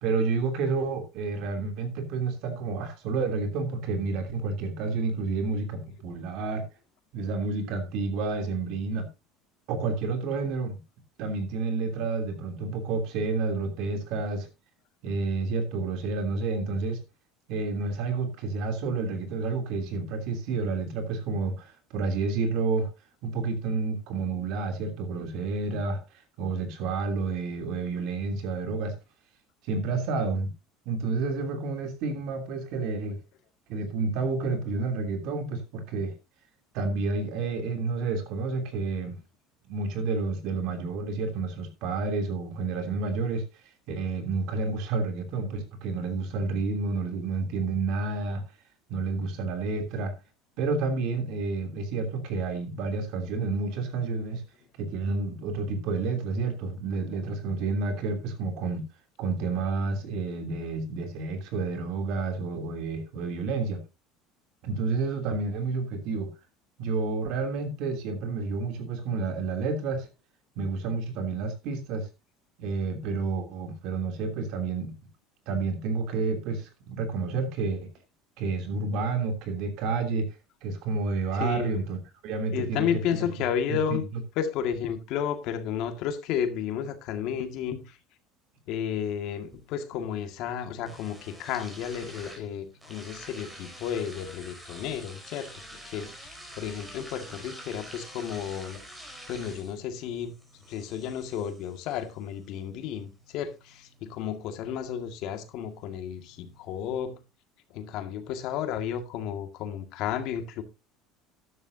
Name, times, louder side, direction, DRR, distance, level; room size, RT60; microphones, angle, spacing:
voice 1, 0.0-6.6 7.1-9.1 9.7-10.8 11.2-14.5 15.0-17.0 17.5-22.9 23.2-26.0 26.4-28.9 29.7-30.5 30.8-33.2 33.7-36.1 36.7-39.2 39.7-43.5 43.9-48.4 48.9-50.1 50.6-54.4 54.8-58.8 59.2-63.8 64.6-66.3 66.8-70.1 70.6-72.1 72.6-74.9 75.5-77.9 78.4-80.3 80.6-82.0 82.2-82.9 83.1-83.3 83.7-84.0, right 4 dB, 65° right, 3.0 m, -30 dB
voice 2, 81.4-81.8 82.5-84.0 84.4-88.0 88.7-96.3 96.6-98.8 99.3-100.4 100.7-107.2 107.7-110.6, left 8 dB, 60° left, 1.9 m, -32 dB
sound 1, 89.0-107.0, equal, 10° right, 4.2 m, -49 dB
13.0 x 11.0 x 2.7 m
supercardioid pair, 125°, 0 cm